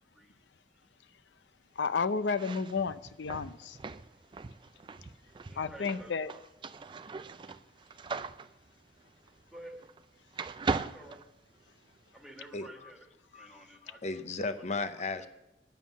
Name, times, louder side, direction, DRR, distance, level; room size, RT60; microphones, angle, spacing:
voice 1, 1.8-3.8 5.6-6.3, left 5 dB, 75° left, 13 dB, 0.5 m, -32 dB
sound 1, 2.2-10.1 10.3-12.0, right 4 dB, 25° right, 0.3 m, -39 dB
voice 2, 5.5-6.4 9.5-9.8 10.8-11.2 12.1-13.0 13.3-14.6 15.0-15.1, right 1 dB, ahead, -1 dB, 1.7 m, -51 dB
voice 3, 12.5-12.9 13.3-13.6 14.0-15.3, left 3 dB, 40° left, 10 dB, 0.7 m, -35 dB
9.1 x 7.4 x 7.0 m, 0.91 s
head